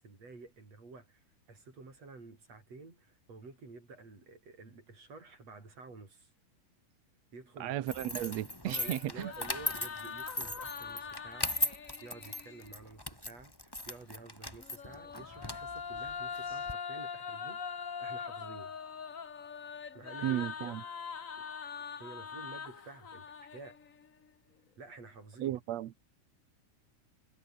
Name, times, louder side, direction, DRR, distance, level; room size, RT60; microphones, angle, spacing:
voice 1, 0.0-6.3 7.3-7.8 8.7-18.7 19.9-21.0 21.4-21.5 22.0-23.8 24.8-25.6, right 3 dB, 50° right, 7.6 m, -51 dB
voice 2, 7.6-9.3 20.2-20.8 25.4-25.9, right 13 dB, 65° right, 1.9 m, -34 dB
sound 1, 7.9-16.7, left 1 dB, 5° left, 2.6 m, -38 dB
sound 2, 8.7-12.7 14.5-24.1, left 6 dB, 55° left, 0.9 m, -42 dB
omnidirectional pair, 3.8 m